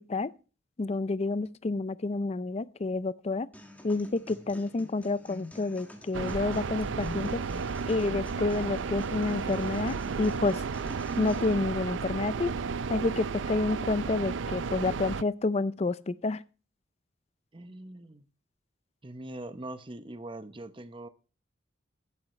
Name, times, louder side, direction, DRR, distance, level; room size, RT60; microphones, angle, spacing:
voice 1, 0.8-3.5 3.8-10.6 11.2-12.5 12.9-16.4, left 3 dB, 35° left, 0.4 m, -29 dB
sound 1, 3.5-11.5, equal, 10° left, 1.7 m, -49 dB
sound 2, 6.1-15.2, right 5 dB, 70° right, 0.4 m, -33 dB
voice 2, 17.5-18.3 19.0-21.1, right 1 dB, 25° right, 0.8 m, -42 dB
11.5 x 9.3 x 3.2 m
head